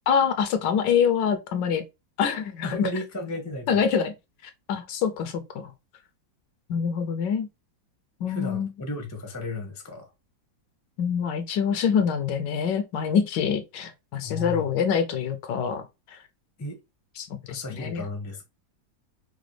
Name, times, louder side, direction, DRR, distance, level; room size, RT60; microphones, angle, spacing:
voice 1, 0.1-1.8 2.2-2.9 3.7-4.1 4.7-5.7 6.7-7.5 8.2-8.7 11.0-16.2 17.2-18.0, left 7 dB, 75° left, 1.1 m, -25 dB
voice 2, 2.6-3.8 8.3-10.1 14.2-14.7 16.6-16.8 17.5-18.5, left 2 dB, 20° left, 0.5 m, -34 dB
4.8 x 2.2 x 3.2 m
omnidirectional pair, 2.1 m